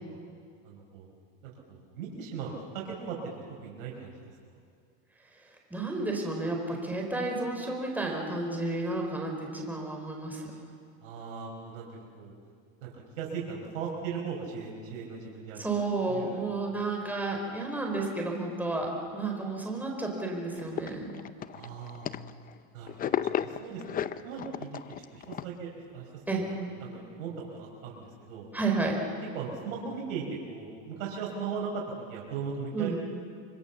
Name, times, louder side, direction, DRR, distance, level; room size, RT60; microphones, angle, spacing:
voice 1, 0.6-1.1 1.4-4.2 11.0-12.3 12.8-15.7 16.1-16.4 21.5-22.1 22.7-24.7 25.1-26.1 26.3-28.5 29.3-31.8 32.1-33.0, right 5 dB, 85° right, -2 dB, 5.2 m, -38 dB
voice 2, 5.7-10.4 15.6-21.1 26.3-26.5 28.5-29.0 32.7-33.0, right 3 dB, 5° right, 0 dB, 4.8 m, -31 dB
sound 1, 20.6-22.6 22.9-25.5, left 10 dB, 20° left, 0.6 m, -34 dB
26.0 x 24.5 x 7.2 m, 2.3 s
supercardioid pair, 135°, 39 cm